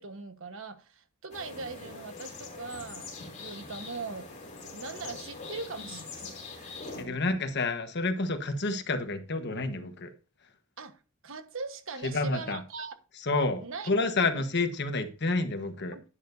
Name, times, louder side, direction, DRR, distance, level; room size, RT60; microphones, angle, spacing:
voice 1, 0.0-4.3 4.7-7.2 10.8-11.0 11.2-13.0 13.6-14.5 15.9-16.0, right 4 dB, 65° right, 1.3 m, -41 dB
sound 1, 1.3-7.0, left 4 dB, 35° left, 3.2 m, -43 dB
voice 2, 7.0-10.1 12.0-12.6 13.2-16.0, left 3 dB, 55° left, 1.3 m, -29 dB
11.0 x 10.0 x 2.7 m
head